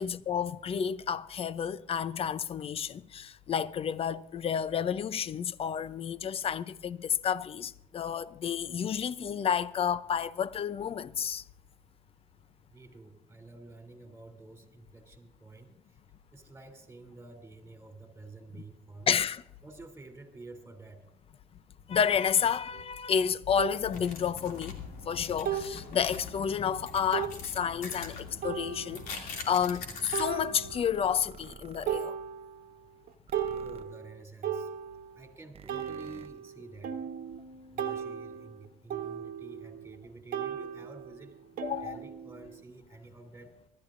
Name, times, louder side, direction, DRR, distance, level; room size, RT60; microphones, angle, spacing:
voice 1, 0.0-11.4 19.1-19.4 21.9-32.2 41.6-42.0, left 8 dB, 40° left, 0.6 m, -30 dB
voice 2, 12.7-16.0 16.3-19.1 19.6-21.1 33.4-34.7 35.1-37.1 37.7-41.4 41.8-43.6, right 3 dB, 15° right, 3.1 m, -50 dB
sound 1, 22.7-22.8 23.6-23.8 25.4-25.9 26.4-26.5 27.1-27.4 28.4-29.1 30.1-31.0 31.4-31.6 31.9-32.7 33.1-35.2 35.7-40.0 40.3-42.6, right 9 dB, 75° right, 1.2 m, -36 dB
sound 2, 23.9-30.7, left 4 dB, 85° left, 2.6 m, -43 dB
sound 3, 30.7-32.0 33.3-33.8 35.5-36.3, right 7 dB, 40° right, 0.7 m, -50 dB
24.5 x 12.5 x 2.6 m
cardioid pair, 95°, 15 cm